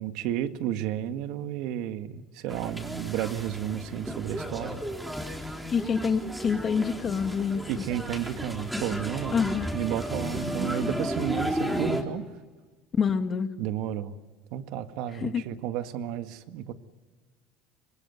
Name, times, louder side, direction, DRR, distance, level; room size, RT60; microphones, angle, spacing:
voice 1, 0.0-4.8 7.7-9.4 9.7-12.2 13.6-14.2 14.5-16.7, right 11 dB, 70° right, 9 dB, 1.7 m, -32 dB
sound 1, 2.5-12.0, equal, 5° right, 3.8 m, -33 dB
voice 2, 5.7-7.8 9.3-9.7 13.0-13.5 15.2-15.4, left 6 dB, 35° left, 8 dB, 2.0 m, -26 dB
25.5 x 20.0 x 9.3 m, 1.4 s
supercardioid pair, 105°, 0 cm